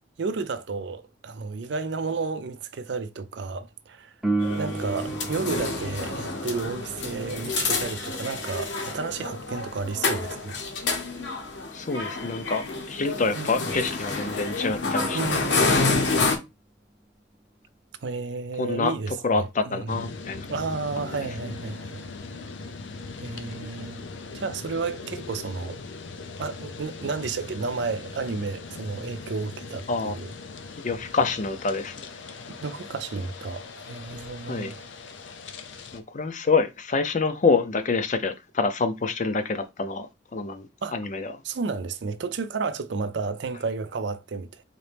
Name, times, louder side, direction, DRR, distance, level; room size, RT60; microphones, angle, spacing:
voice 1, 0.2-4.1 4.6-10.6 13.3-13.7 15.1-16.3 18.0-20.0 20.5-22.0 23.2-24.0 24.3-25.8 26.4-30.3 32.5-34.8 40.8-41.0 41.4-44.6, right 4 dB, 70° right, 0.5 m, -32 dB
Piano, 4.2-14.6 22.2-22.3, right 2 dB, 5° right, 0.7 m, -36 dB
sound 1, 4.4-16.4, left 3 dB, 75° left, 1.0 m, -28 dB
voice 2, 11.7-15.2 18.6-20.5 21.0-21.1 29.9-30.1 30.8-32.1 34.4-34.7 35.9-40.7 40.9-41.3, left 4 dB, 40° left, 0.5 m, -26 dB
sound 2, 19.9-36.0, left 4 dB, 90° left, 0.6 m, -40 dB
4.1 x 2.9 x 3.4 m
head